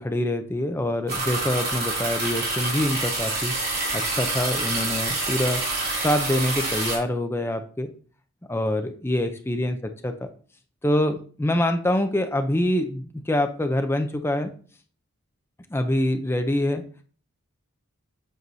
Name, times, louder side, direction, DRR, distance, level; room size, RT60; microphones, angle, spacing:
voice 1, 0.0-3.5 3.9-5.6 5.9-7.9 8.5-9.8 10.0-10.1 10.8-14.5 15.7-16.8, left 1 dB, 10° left, 7 dB, 0.5 m, -25 dB
sound 1, 1.1-7.0, right 2 dB, 45° right, 2.4 m, -27 dB
7.8 x 4.7 x 2.6 m, 0.42 s
head